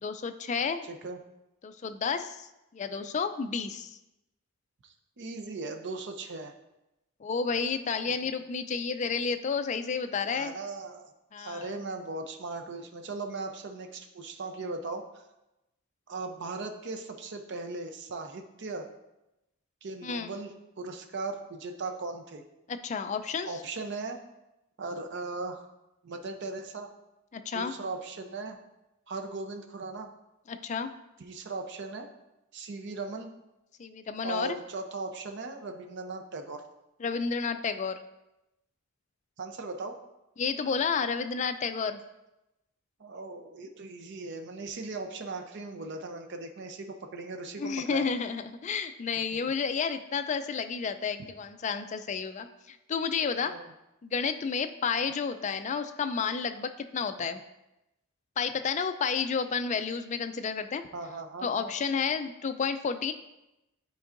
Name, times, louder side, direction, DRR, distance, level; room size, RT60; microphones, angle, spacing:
voice 1, 0.0-0.9 1.6-4.0 7.2-10.6 11.3-11.7 20.0-20.3 22.7-23.6 27.3-27.7 30.5-30.9 33.8-34.6 37.0-38.0 40.4-42.0 47.6-53.5 54.0-57.4 58.4-60.8 61.4-63.1, left 5 dB, 35° left, 9 dB, 0.3 m, -31 dB
voice 2, 0.8-1.2 4.8-6.5 8.1-8.2 10.3-11.1 11.4-15.2 16.1-18.9 19.8-22.4 23.4-24.2 24.8-25.7 26.0-26.9 27.5-28.6 29.1-30.1 31.2-32.1 32.5-33.3 34.2-36.6 39.4-39.9 43.0-48.0 53.4-53.7 60.9-61.7, right 3 dB, 55° right, 5 dB, 0.5 m, -38 dB
9.6 x 4.5 x 2.5 m, 0.94 s
head